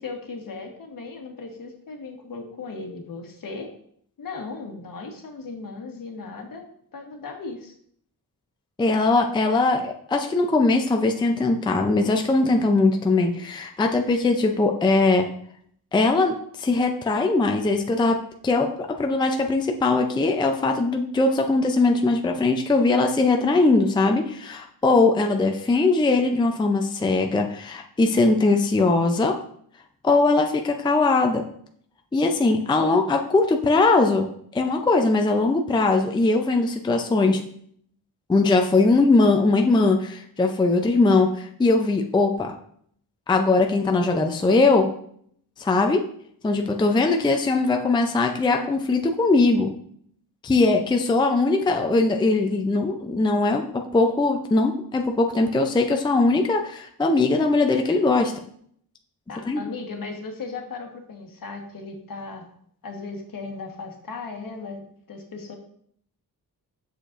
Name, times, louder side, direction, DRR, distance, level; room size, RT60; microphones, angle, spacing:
voice 1, 0.0-3.7 4.2-7.7 59.3-62.5 62.8-65.6, left 4 dB, 60° left, 3 dB, 1.3 m, -37 dB
voice 2, 8.8-15.3 15.9-18.2 18.4-18.7 19.0-29.4 30.0-31.4 32.1-34.3 34.5-37.4 38.3-42.5 43.3-44.9 45.6-46.0 46.4-49.7 50.4-58.3 59.5-59.6, left 3 dB, 15° left, 3 dB, 0.4 m, -20 dB
7.5 x 6.6 x 2.5 m, 0.66 s
wide cardioid pair, 120°, 37 cm